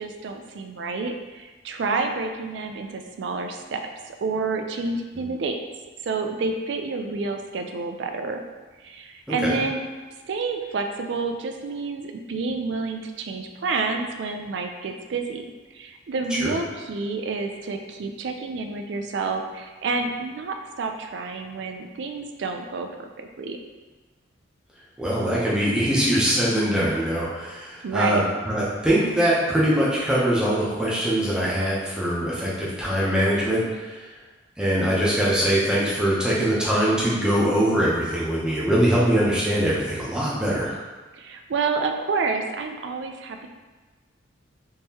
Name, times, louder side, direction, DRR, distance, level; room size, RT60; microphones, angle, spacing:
voice 1, 0.0-3.8 4.1-5.6 6.0-8.4 8.8-9.8 10.3-15.5 15.7-23.6 27.8-28.2 41.1-43.5, right 4 dB, 60° right, 5 dB, 0.3 m, -29 dB
voice 2, 25.0-34.0 34.6-40.7, equal, 5° right, -7 dB, 0.7 m, -22 dB
3.6 x 2.9 x 2.8 m, 1.3 s
head